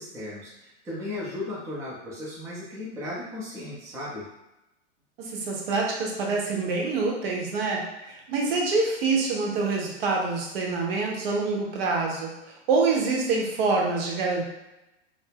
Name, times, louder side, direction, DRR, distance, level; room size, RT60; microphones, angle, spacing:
voice 1, 0.0-4.3, left 1 dB, 10° right, -7 dB, 0.5 m, -36 dB
voice 2, 5.2-12.3 12.7-14.4, right 3 dB, 50° right, -1 dB, 0.8 m, -26 dB
2.3 x 2.0 x 3.3 m, 0.95 s
hypercardioid pair, 105°, 37 cm